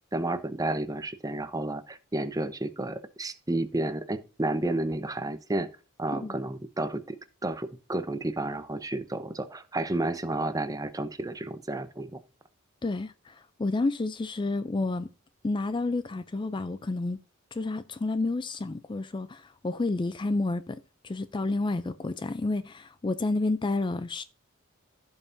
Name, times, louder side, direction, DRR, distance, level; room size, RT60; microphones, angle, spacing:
voice 1, 0.1-5.7 6.0-12.2, right 2 dB, 15° right, 0.7 m, -31 dB
voice 2, 12.8-15.1 15.4-17.2 17.5-24.2, left 2 dB, 20° left, 0.4 m, -30 dB
15.5 x 5.6 x 2.6 m
head